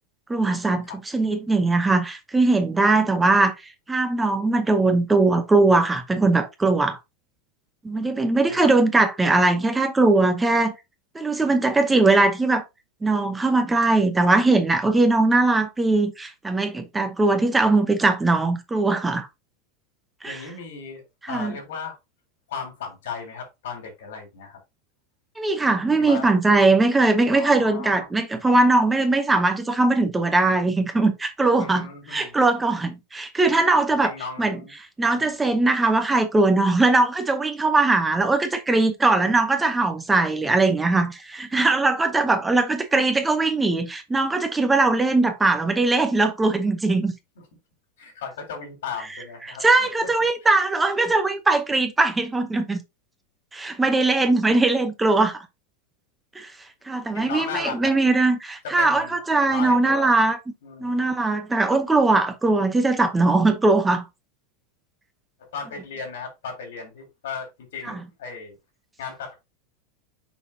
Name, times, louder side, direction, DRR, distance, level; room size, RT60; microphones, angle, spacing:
voice 1, 0.3-3.5 3.9-7.0 7.8-10.7 11.1-12.6 13.0-19.3 20.2-20.4 21.2-21.5 25.4-34.1 34.4-34.6 35.0-47.1 49.6-52.8 53.5-55.4 56.4-56.5 56.9-60.4 60.8-64.0 67.8-67.9, right 3 dB, 10° right, 0.7 m, -20 dB
voice 2, 20.2-22.0 22.5-24.6 26.0-26.3 27.3-28.0 31.6-32.4 34.0-34.7 35.1-35.3 40.7-41.0 47.4-47.5 48.0-50.3 57.1-58.0 58.6-59.2 59.5-60.2 60.6-61.3 65.4-68.5 69.0-69.4, left 5 dB, 85° left, 3.4 m, -36 dB
6.2 x 5.6 x 2.7 m
supercardioid pair, 170°, 0 cm